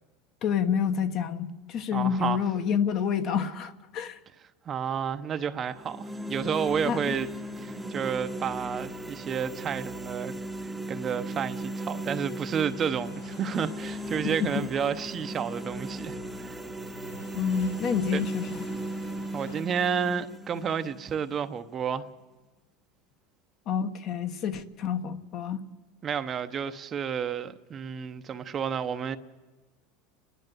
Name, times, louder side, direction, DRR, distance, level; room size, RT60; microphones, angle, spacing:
voice 1, 0.4-4.2 6.8-7.2 14.4-14.7 17.3-18.7 23.7-25.6, left 7 dB, 45° left, 1.3 m, -28 dB
voice 2, 1.9-2.4 4.7-7.3 7.6-16.6 18.1-18.2 19.3-22.1 26.0-29.2, right 7 dB, 30° right, 0.9 m, -31 dB
sound 1, 5.7-21.7, right 1 dB, 10° right, 1.0 m, -37 dB
sound 2, 11.7-19.6, left 4 dB, 85° left, 6.1 m, -51 dB
30.0 x 11.0 x 8.0 m
supercardioid pair, 115°, 0 cm